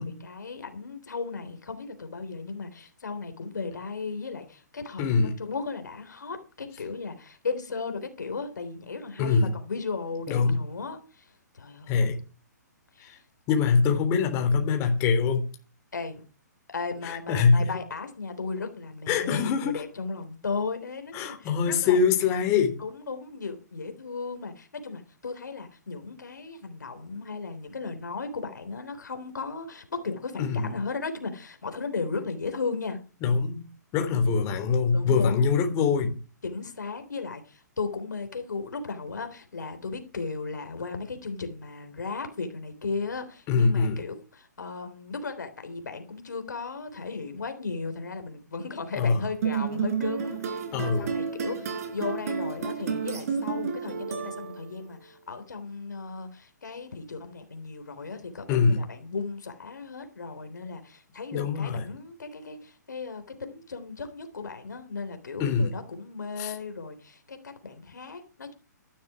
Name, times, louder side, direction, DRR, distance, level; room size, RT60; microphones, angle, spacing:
voice 1, 0.2-12.0 12.9-13.2 15.9-16.2 16.7-22.0 22.8-33.0 34.9-35.5 36.4-68.5, left 4 dB, 75° left, 3.5 m, -36 dB
voice 2, 5.0-5.4 9.2-9.5 10.3-10.6 11.9-12.2 13.0-13.2 13.5-15.5 17.0-17.7 19.1-19.8 21.1-22.8 30.4-30.7 33.2-33.6 33.9-36.2 43.5-44.0 48.9-49.2 50.7-51.1 58.5-58.9 61.3-61.9 65.4-65.7 66.4-66.5, left 5 dB, 30° left, 3.3 m, -24 dB
sound 1, 49.4-54.8, right 6 dB, 55° right, 5.3 m, -31 dB
15.5 x 12.0 x 4.9 m
hypercardioid pair, 130°, 10 cm